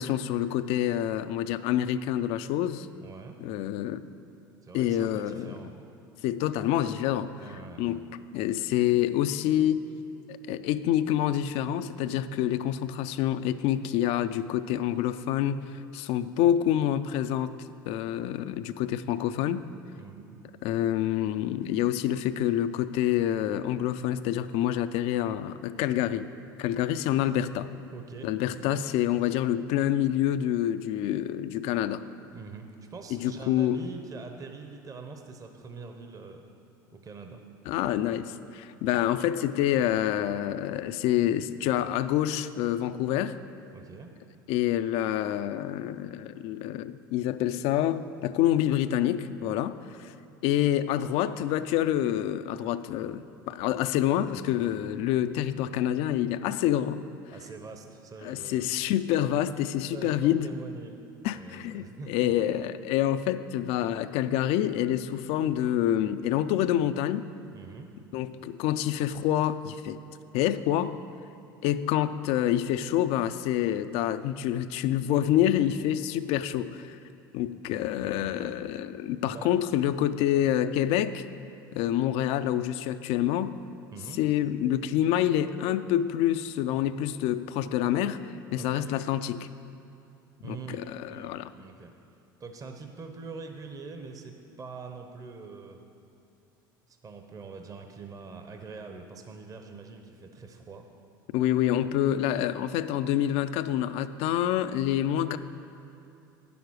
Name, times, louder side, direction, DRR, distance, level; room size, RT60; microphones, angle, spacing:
voice 1, 0.0-2.9 3.4-4.0 4.7-5.6 6.2-7.3 7.8-8.0 8.3-9.9 10.3-15.6 15.9-17.5 17.9-19.6 20.6-26.3 26.6-27.7 28.2-32.0 33.1-33.8 37.7-43.4 44.5-50.1 50.4-57.0 58.2-60.5 61.2-67.3 68.1-70.0 70.3-70.9 71.6-77.0 77.3-81.3 81.7-83.5 84.2-89.5 90.5-91.5 101.3-105.4, left 11 dB, 60° left, 12 dB, 0.4 m, -27 dB
voice 2, 3.0-3.4 4.6-5.7 7.4-8.0 20.0-20.4 27.9-28.8 32.3-36.5 36.9-37.4 43.7-44.1 57.3-58.7 59.7-61.0 61.3-62.3 67.5-67.9 78.0-78.7 79.3-79.5 83.9-84.2 88.6-88.9 90.4-90.8 91.1-91.9 92.4-95.8 96.9-100.9, right 4 dB, 30° right, 5 dB, 0.9 m, -44 dB
9.3 x 7.0 x 6.3 m, 2.7 s
hypercardioid pair, 80°, 11 cm